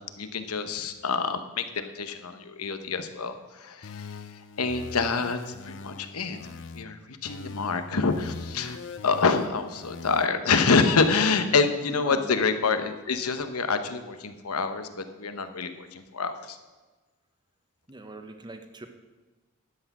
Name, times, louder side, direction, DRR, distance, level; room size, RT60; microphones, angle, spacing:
voice 1, 0.2-4.1 4.6-6.4 6.7-8.8 9.0-16.6, left 4 dB, 80° left, 9 dB, 0.9 m, -27 dB
sound 1, 3.8-6.8 7.2-10.3, left 4 dB, 55° left, 0.5 m, -41 dB
voice 2, 11.9-12.3 17.9-18.9, right 2 dB, 20° right, 7 dB, 0.9 m, -41 dB
11.5 x 8.2 x 6.0 m, 1.2 s
head